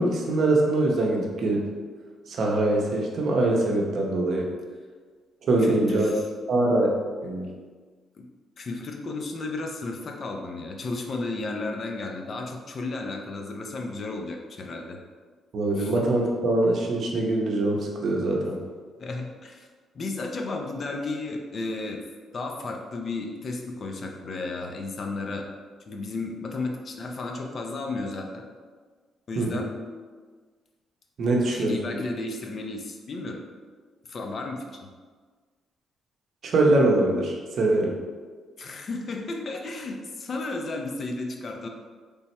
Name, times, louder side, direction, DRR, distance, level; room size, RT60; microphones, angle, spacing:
voice 1, 0.0-1.7 2.3-4.5 5.4-6.1 6.5-7.5 15.5-18.6 29.4-29.7 31.2-32.0 36.4-38.0, right 2 dB, 60° right, -1 dB, 0.7 m, -23 dB
voice 2, 5.6-6.3 8.2-8.3 8.6-15.0 15.8-15.9 19.0-19.7 19.9-22.0 22.3-25.5 25.9-28.4 29.3-29.7 31.5-33.4 34.1-34.8 38.6-41.7, left 3 dB, 50° left, 2 dB, 0.5 m, -33 dB
3.4 x 2.1 x 4.2 m, 1.5 s
cardioid pair, 90°, 0 cm